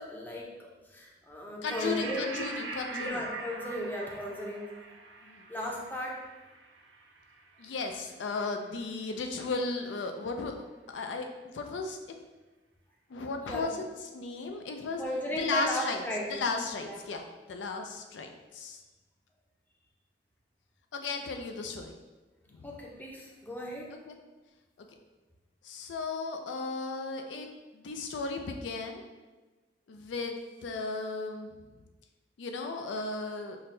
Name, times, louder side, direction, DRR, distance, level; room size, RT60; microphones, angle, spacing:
voice 1, 0.0-2.3 3.0-4.6 5.5-6.2 13.5-13.7 15.0-16.3 16.8-17.0 22.6-23.9, equal, 10° left, -2 dB, 0.5 m, -36 dB
voice 2, 1.6-3.3 5.2-5.5 7.6-10.7 10.9-12.0 13.1-15.0 15.3-16.0 16.3-17.2 17.5-18.8 20.9-21.9 22.5-22.7 24.1-24.2 25.6-27.5 27.7-29.0 29.9-30.4 30.6-31.6 32.4-33.6, left 3 dB, 80° left, 4 dB, 0.4 m, -35 dB
sound 1, 1.7-8.5, right 3 dB, 80° right, 0.5 m, -43 dB
5.7 x 2.2 x 2.6 m, 1.2 s
head